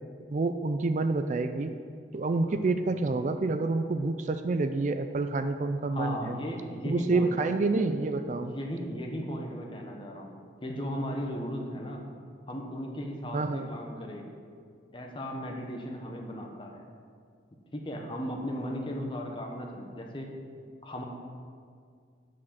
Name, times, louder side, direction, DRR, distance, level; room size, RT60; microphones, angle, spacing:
voice 1, 0.3-1.7 2.1-6.4 6.8-8.5 13.3-13.7, right 3 dB, 40° right, 8 dB, 0.4 m, -28 dB
voice 2, 5.9-7.3 8.4-10.3 10.6-12.1 12.5-14.3 14.9-16.8 17.7-20.3 20.8-21.0, equal, 25° left, 1 dB, 1.0 m, -36 dB
7.4 x 6.3 x 7.2 m, 2.2 s
head